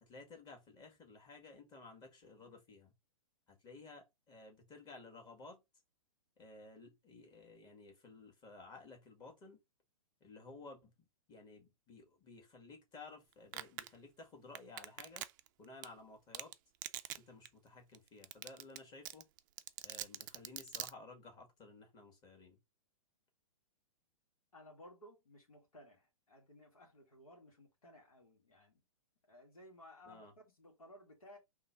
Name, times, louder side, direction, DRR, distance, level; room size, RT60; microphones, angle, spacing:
voice 1, 0.0-2.9 3.5-5.6 6.4-9.6 10.2-10.9 11.3-15.3 15.6-16.5 17.2-19.3 19.8-22.6 30.1-30.3, left 3 dB, 20° left, 1.8 m, -55 dB
Domestic sounds home sounds, 13.5-13.9 14.5-15.5 15.8-15.9 16.3-16.5 16.8-17.2 17.4-17.5 17.9-18.0 18.2-18.8 19.0-20.9, right 14 dB, 35° right, 0.4 m, -42 dB
voice 2, 24.5-28.8 29.3-31.4, left 1 dB, 75° left, 2.0 m, -58 dB
3.7 x 3.0 x 4.6 m
figure-of-eight pair, 115°, 18 cm